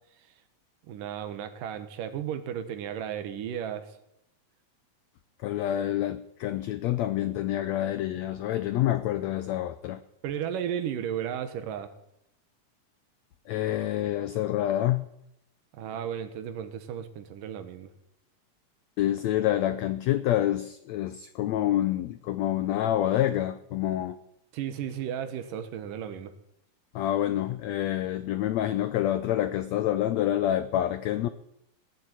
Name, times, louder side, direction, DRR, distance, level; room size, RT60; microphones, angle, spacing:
voice 1, 0.9-4.0 10.2-11.9 15.7-17.9 24.5-26.3, right 9 dB, 75° right, 2.8 m, -34 dB
voice 2, 5.4-10.0 13.5-15.1 19.0-24.2 26.9-31.3, left 12 dB, 90° left, 1.5 m, -27 dB
17.5 x 7.7 x 10.0 m
omnidirectional pair, 3.9 m